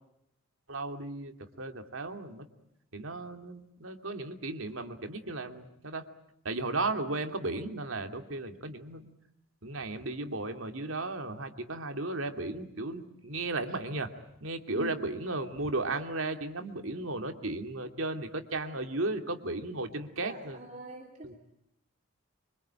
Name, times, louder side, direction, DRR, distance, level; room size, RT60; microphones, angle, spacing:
voice 1, 0.7-2.5 2.9-6.0 6.4-9.1 9.6-14.1 14.4-20.6 21.2-21.3, right 2 dB, 65° right, 6 dB, 2.6 m, -35 dB
voice 2, 20.2-21.3, right 1 dB, 35° right, 1 dB, 3.1 m, -44 dB
25.5 x 25.5 x 8.8 m, 0.79 s
head